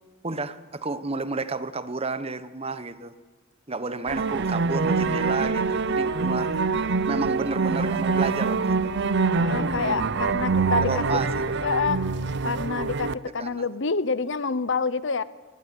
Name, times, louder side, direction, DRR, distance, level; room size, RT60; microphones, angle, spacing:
voice 1, 0.2-3.1 3.7-6.5 7.1-8.9 10.8-11.6 13.4-13.5, right 3 dB, 30° right, 13 dB, 1.1 m, -31 dB
sound 1, 4.1-13.1, right 4 dB, 60° right, 0.7 m, -25 dB
voice 2, 9.4-11.2 11.6-12.1 12.4-15.2, left 4 dB, 65° left, 16 dB, 0.9 m, -27 dB
22.5 x 18.5 x 10.0 m, 1.3 s
head